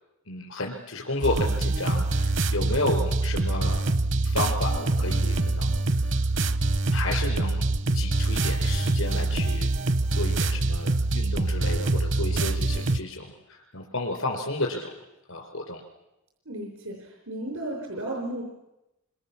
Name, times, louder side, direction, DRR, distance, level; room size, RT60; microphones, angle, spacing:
voice 1, 0.3-3.8 4.2-6.3 6.9-7.6 7.9-9.7 10.1-14.9 15.3-15.8, left 2 dB, 85° left, 1 dB, 4.4 m, -32 dB
sound 1, 1.2-13.0, right 2 dB, 65° right, 0.9 m, -25 dB
voice 2, 16.5-18.4, right 1 dB, 90° right, 0 dB, 5.2 m, -34 dB
28.0 x 26.0 x 7.2 m, 0.95 s
head